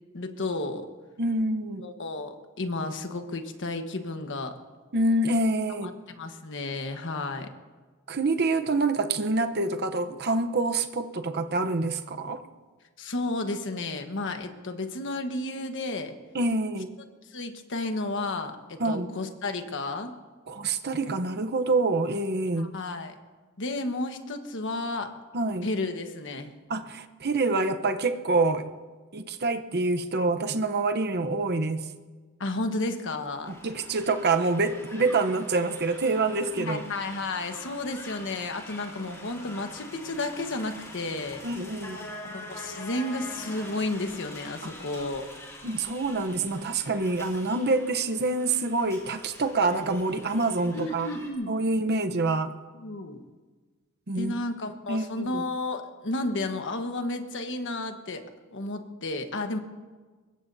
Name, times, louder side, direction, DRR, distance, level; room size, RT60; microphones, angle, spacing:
voice 1, 0.1-0.9 1.8-4.5 5.8-7.5 13.0-16.1 17.2-20.1 22.6-23.1 23.6-25.1 25.6-26.5 32.4-33.5 36.6-41.4 42.2-45.3 50.7-51.5 52.8-53.2 54.1-58.2 58.5-59.6, left 2 dB, 60° left, 6 dB, 1.3 m, -32 dB
voice 2, 1.2-1.8 4.9-5.9 8.1-12.4 16.3-16.9 18.8-19.1 20.5-22.7 25.3-25.7 26.7-28.7 29.1-31.9 33.6-36.8 41.4-42.0 45.6-51.1 51.5-52.5 54.1-54.3 54.9-55.4, right 3 dB, 50° right, 7 dB, 0.9 m, -26 dB
sound 1, 33.5-51.3, left 1 dB, 15° left, 3.8 m, -45 dB
23.5 x 21.0 x 2.8 m, 1.4 s
head